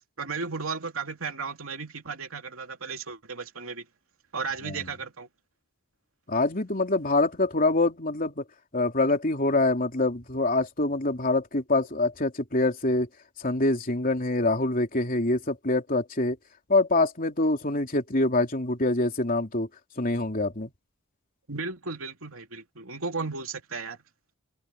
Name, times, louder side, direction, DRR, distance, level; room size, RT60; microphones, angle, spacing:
voice 1, 0.2-3.9 4.3-5.3 21.5-24.0, right 4 dB, 85° right, 2.8 m, -34 dB
voice 2, 6.3-8.4 8.7-13.1 13.4-16.4 16.7-19.7 20.0-20.7, left 2 dB, 40° left, 3.4 m, -25 dB
head